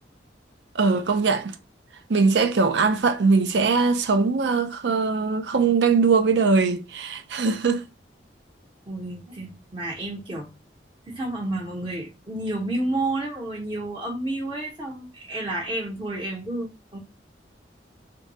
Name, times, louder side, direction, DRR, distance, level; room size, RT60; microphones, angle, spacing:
voice 1, 0.7-1.5 2.1-7.9, right 4 dB, 75° right, 0.5 m, -21 dB
voice 2, 8.9-10.5 11.1-17.0, right 1 dB, 30° right, 0.7 m, -30 dB
2.6 x 2.3 x 3.9 m
head